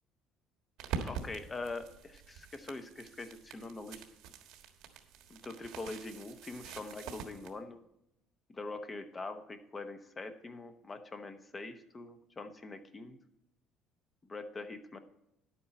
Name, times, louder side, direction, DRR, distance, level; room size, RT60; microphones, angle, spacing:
sound 1, 0.8-7.5, right 6 dB, 75° right, 1.5 m, -45 dB
voice 1, 1.1-4.0 5.3-7.8 8.5-13.2 14.2-15.0, left 3 dB, 20° left, 8 dB, 0.9 m, -43 dB
10.5 x 8.8 x 4.2 m, 0.83 s
cardioid pair, 155°, 0 cm